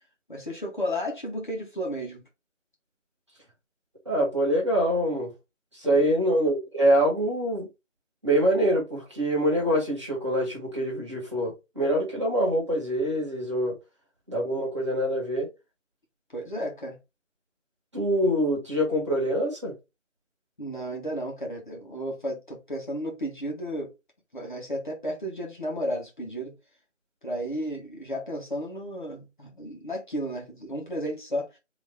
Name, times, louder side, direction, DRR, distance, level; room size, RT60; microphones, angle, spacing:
voice 1, 0.3-2.2 5.8-6.1 16.3-17.0 20.6-23.9 24.3-26.5 27.2-31.5, equal, 40° left, 1.4 m, -33 dB
voice 2, 4.0-5.3 5.7-7.7 8.2-13.7 14.3-15.5 17.9-19.7, equal, 25° right, 1.5 m, -25 dB
4.0 x 3.1 x 3.5 m
figure-of-eight pair, 170°, 37 cm